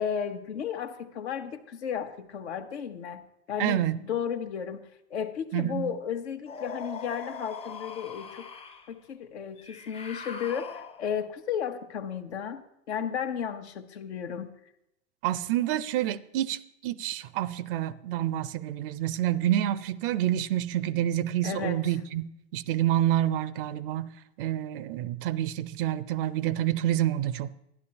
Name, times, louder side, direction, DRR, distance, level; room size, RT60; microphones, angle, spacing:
voice 1, 0.0-8.5 8.9-12.6 12.9-14.6 21.4-21.8, left 8 dB, 70° left, 0.9 m, -34 dB
voice 2, 3.6-4.0 5.5-5.9 15.2-24.1 24.4-27.5, right 12 dB, 50° right, 0.5 m, -28 dB
sound 1, 6.5-8.9 9.6-11.2, left 5 dB, 15° left, 0.6 m, -41 dB
13.0 x 10.5 x 2.9 m
figure-of-eight pair, 85°, 35 cm